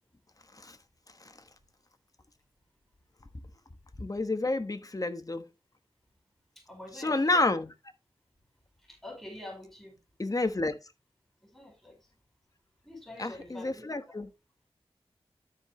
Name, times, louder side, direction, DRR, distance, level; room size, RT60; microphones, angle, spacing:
voice 1, 4.0-5.5 6.9-7.7 10.2-10.8 13.2-14.3, left 2 dB, 35° left, 1.2 m, -30 dB
voice 2, 6.7-7.4 8.9-10.0 11.5-12.0 12.8-14.1, left 1 dB, 5° left, 4.8 m, -46 dB
13.5 x 4.9 x 3.1 m
wide cardioid pair, 50°, 10 cm